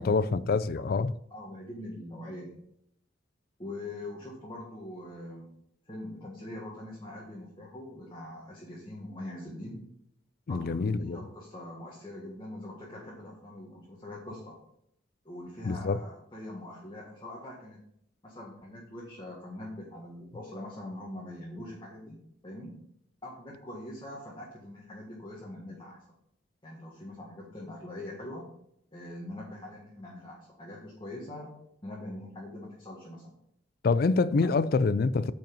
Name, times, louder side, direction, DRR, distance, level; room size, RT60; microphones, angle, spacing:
voice 1, 0.0-1.1 10.5-11.2 15.6-16.0 33.8-35.3, left 4 dB, 50° left, 0.4 m, -26 dB
voice 2, 1.3-2.6 3.6-5.5 5.9-9.8 10.5-14.5 15.2-17.8 18.2-22.2 22.4-22.7 23.2-26.0 26.6-28.4 28.9-31.5 31.8-33.4 34.6-34.7, left 1 dB, 25° left, 1.6 m, -43 dB
9.0 x 5.4 x 5.4 m
head